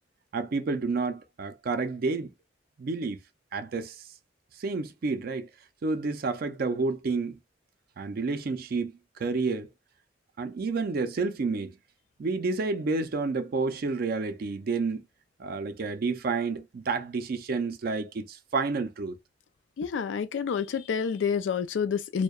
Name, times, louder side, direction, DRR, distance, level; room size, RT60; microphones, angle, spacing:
voice 1, 0.3-2.3 2.8-3.2 3.5-4.0 4.6-5.5 5.8-7.4 8.0-9.7 10.4-11.8 12.2-15.0 15.4-19.1, right 4 dB, 55° right, 0.4 m, -30 dB
voice 2, 19.8-22.2, left 6 dB, 85° left, 0.3 m, -28 dB
2.7 x 2.1 x 2.2 m
head